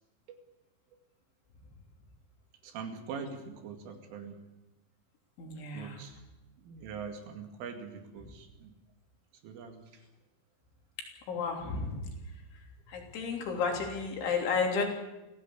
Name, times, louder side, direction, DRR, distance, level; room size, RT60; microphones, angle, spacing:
voice 1, 2.6-4.4 5.7-6.2 6.6-8.7 9.4-10.0, right 6 dB, 75° right, 5 dB, 4.8 m, -43 dB
voice 2, 5.4-6.0 11.3-12.1 12.9-14.8, left 5 dB, 70° left, 2 dB, 5.6 m, -32 dB
26.5 x 16.5 x 8.5 m, 1.0 s
omnidirectional pair, 5.7 m